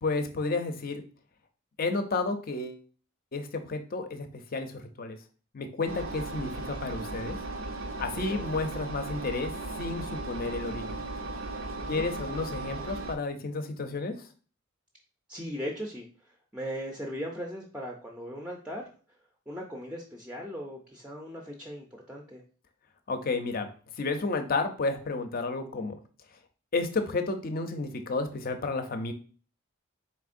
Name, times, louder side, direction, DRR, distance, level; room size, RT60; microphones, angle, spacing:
voice 1, 0.0-1.0 1.8-2.8 3.3-5.2 5.5-7.4 8.0-11.0 11.9-14.3 23.1-23.7 24.0-26.0 26.7-29.1, left 3 dB, 45° left, 7 dB, 0.5 m, -31 dB
Engine, 5.9-13.2, right 2 dB, 85° right, 0.6 m, -36 dB
voice 2, 15.3-18.9 19.5-22.4, equal, 5° right, 0 dB, 0.4 m, -38 dB
4.3 x 3.5 x 2.5 m, 0.39 s
head